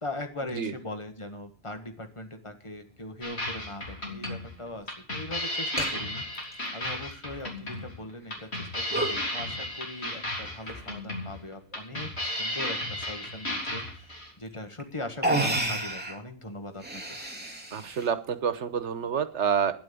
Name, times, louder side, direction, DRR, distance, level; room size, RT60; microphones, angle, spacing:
voice 1, 0.0-6.2 6.7-17.2, left 1 dB, 25° left, 6 dB, 1.7 m, -40 dB
sound 1, 2.5-2.6 4.2-4.3 4.7-4.8 5.8-5.9 6.3-7.1 7.6-7.7 8.4-8.6 8.9-9.2 10.4-10.9 11.7-12.1 14.0-14.1 14.8-14.9 15.2-16.2 16.7-18.1, right 1 dB, 10° right, 2.4 m, -31 dB
sound 2, 3.2-14.3, left 1 dB, 70° left, 3.9 m, -34 dB
voice 2, 17.7-19.7, right 7 dB, 85° right, 13 dB, 1.3 m, -28 dB
10.0 x 9.0 x 8.5 m, 0.42 s
omnidirectional pair, 1.2 m